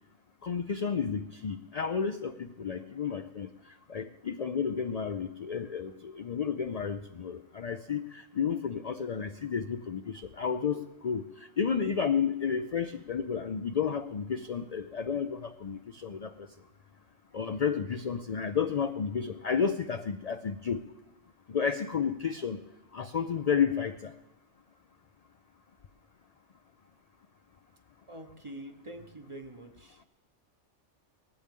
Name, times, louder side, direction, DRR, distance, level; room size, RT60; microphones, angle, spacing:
voice 1, 0.4-3.5 3.9-16.3 17.3-20.8 21.5-22.6 22.9-24.1, left 6 dB, 50° left, 8 dB, 0.4 m, -31 dB
voice 2, 28.1-30.0, right 1 dB, 25° right, 6 dB, 1.0 m, -45 dB
19.0 x 15.5 x 3.7 m, 1.0 s
omnidirectional pair, 1.3 m